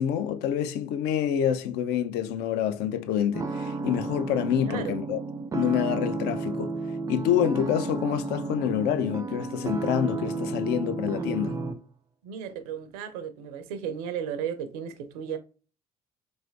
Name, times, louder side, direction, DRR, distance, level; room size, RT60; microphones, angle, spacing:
voice 1, 0.0-5.2 5.5-6.8 7.1-11.6, left 9 dB, 60° left, 0.4 m, -27 dB
sound 1, 3.3-11.8, right 3 dB, 20° right, 0.4 m, -32 dB
voice 2, 4.6-5.0 10.1-10.5 12.2-15.4, right 8 dB, 75° right, 0.5 m, -35 dB
3.2 x 2.6 x 2.5 m
hypercardioid pair, 55°, 19 cm